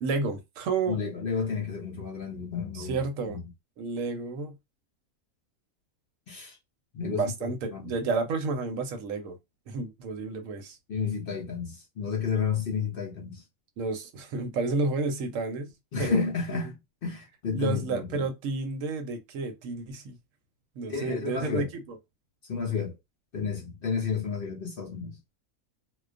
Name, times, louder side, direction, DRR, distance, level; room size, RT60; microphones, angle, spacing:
voice 1, 0.0-1.0 2.8-3.4 3.8-4.5 7.0-9.4 9.7-10.8 13.8-15.7 16.0-16.3 17.5-20.2 20.8-22.0, right 3 dB, 70° right, 0.9 m, -31 dB
voice 2, 0.9-3.4 6.3-6.6 6.9-7.9 10.9-13.4 15.9-18.3 20.9-21.7 22.5-23.0 23.3-25.2, left 6 dB, 65° left, 0.5 m, -31 dB
2.3 x 2.2 x 2.4 m
omnidirectional pair, 1.5 m